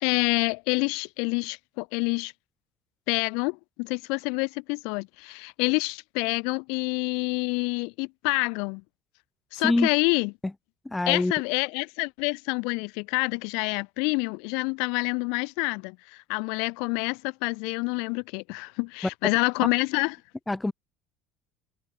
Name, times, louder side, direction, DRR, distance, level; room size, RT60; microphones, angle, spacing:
voice 1, 0.0-2.3 3.1-8.8 9.5-10.3 11.1-20.2, left 34 dB, 75° left, 2.0 m, -27 dB
voice 2, 10.8-11.3 20.5-20.7, left 2 dB, 10° left, 1.0 m, -24 dB
supercardioid pair, 100°, 0 cm